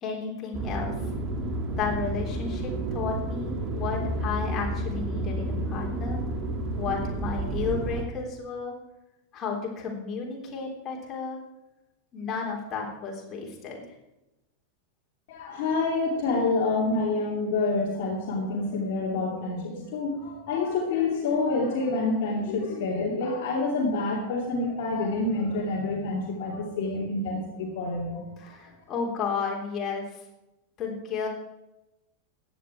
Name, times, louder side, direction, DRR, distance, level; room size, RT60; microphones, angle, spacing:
voice 1, 0.0-0.9 1.8-6.2 6.8-8.7 9.3-11.4 12.1-13.8 28.4-30.0 30.8-31.3, left 5 dB, 30° left, -1 dB, 3.6 m, -32 dB
sound 1, 0.5-8.0, right 1 dB, 25° right, 1.8 m, -30 dB
voice 2, 15.3-28.5, left 3 dB, 50° left, -2 dB, 2.6 m, -27 dB
15.5 x 9.7 x 4.7 m, 0.94 s
figure-of-eight pair, 90°, 0 cm